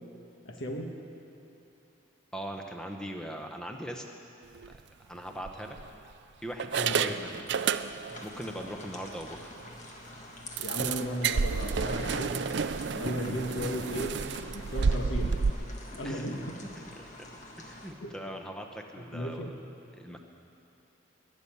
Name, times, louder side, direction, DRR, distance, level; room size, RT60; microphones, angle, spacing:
voice 1, 0.4-0.9 6.8-7.0 10.6-12.3 12.9-14.2 14.5-15.3 15.9-16.5 18.0-18.1 19.0-19.5, left 1 dB, 75° left, 1 dB, 1.5 m, -35 dB
voice 2, 2.3-4.1 4.7-4.8 5.1-5.8 6.4-7.4 8.2-9.5 16.0-16.3 16.9-17.1 17.6-19.4 19.9-20.2, equal, 5° left, 3 dB, 1.0 m, -40 dB
sound 1, 4.5-4.8 5.4-6.1 6.6-8.3 8.6-8.7 9.1-9.2 9.6-9.7 10.6-15.5, right 5 dB, 60° right, 0.4 m, -30 dB
sound 2, 8.1-17.9, left 1 dB, 35° left, 1.6 m, -47 dB
20.5 x 7.1 x 9.6 m, 2.9 s
head